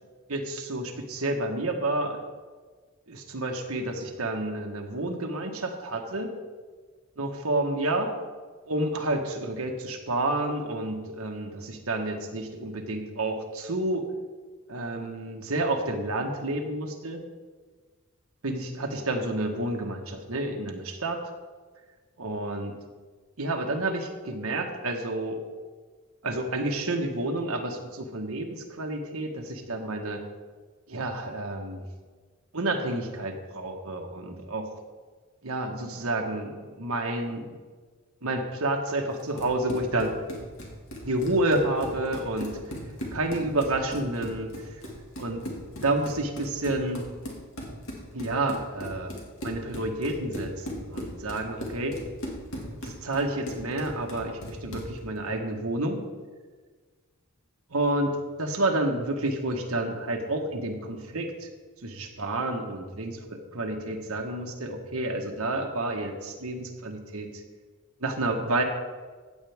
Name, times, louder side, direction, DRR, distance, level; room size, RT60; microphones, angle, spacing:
voice 1, 0.3-2.2 3.1-6.4 7.2-8.1 8.7-14.0 14.7-17.2 18.4-21.2 22.2-22.7 23.4-25.4 26.2-30.2 30.9-31.8 32.5-34.7 35.4-37.5 38.2-40.2 41.0-42.6 43.1-44.7 45.2-45.4 45.8-47.0 48.1-49.1 49.4-52.0 52.8-56.1 57.7-61.5 61.8-67.3 68.0-68.6, right 2 dB, 80° right, 2 dB, 1.4 m, -30 dB
Run, 39.2-55.0, equal, 70° left, 2.0 m, -38 dB
15.0 x 8.3 x 3.5 m, 1.4 s
head